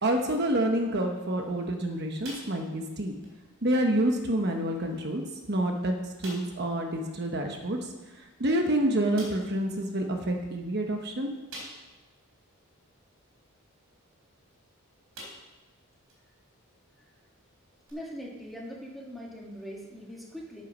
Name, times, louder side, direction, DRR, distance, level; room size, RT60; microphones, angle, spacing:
voice 1, 0.0-3.1 3.6-5.2 5.5-11.3, right 1 dB, 45° right, 3 dB, 1.0 m, -28 dB
sound 1, 2.2-2.9 3.2-3.4 4.0-4.1 4.9-5.0 5.4-5.5 6.2-6.6 8.3-8.4 9.2-9.6 11.5-12.1 12.6-12.7 14.5-14.7 15.1-15.6 16.1-16.2 17.9-18.0, right 1 dB, 65° right, 3.8 m, -44 dB
voice 2, 17.9-20.6, equal, ahead, -3 dB, 1.8 m, -41 dB
9.3 x 9.2 x 6.1 m, 1.2 s
head